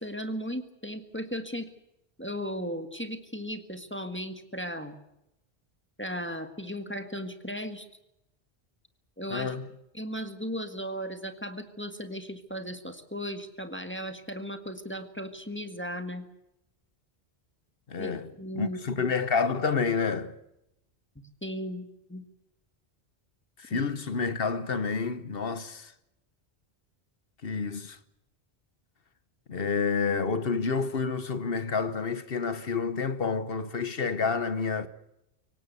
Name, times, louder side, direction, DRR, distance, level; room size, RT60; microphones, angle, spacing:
voice 1, 0.0-1.7 2.2-5.0 6.0-7.9 9.2-9.6 9.9-16.3 18.0-19.1 21.4-22.2 23.7-23.8, equal, 10° left, 1.6 m, -36 dB
voice 2, 9.3-9.7 17.9-18.3 18.5-20.3 23.6-25.9 27.4-28.0 29.5-34.9, left 5 dB, 65° left, 1.3 m, -29 dB
24.0 x 18.5 x 8.1 m
omnidirectional pair, 1.1 m